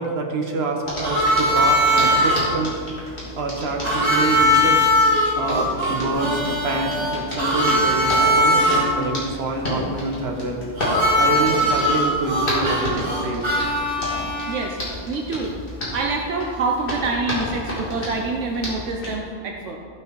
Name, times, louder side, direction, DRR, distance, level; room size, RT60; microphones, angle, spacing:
voice 1, 0.0-2.8 3.4-4.9 5.4-10.6 10.9-13.5, right 3 dB, 55° right, 2 dB, 1.4 m, -26 dB
Hands, 0.8-19.1, left 1 dB, 45° left, 3.0 m, -32 dB
Harmonica, 1.0-2.5 3.8-8.8 10.8-14.7, equal, 20° right, 2.6 m, -20 dB
voice 2, 14.5-14.8 15.1-15.5 15.9-19.8, right 3 dB, 75° right, 1 dB, 1.1 m, -26 dB
14.0 x 6.4 x 4.6 m, 2.3 s
omnidirectional pair, 1.3 m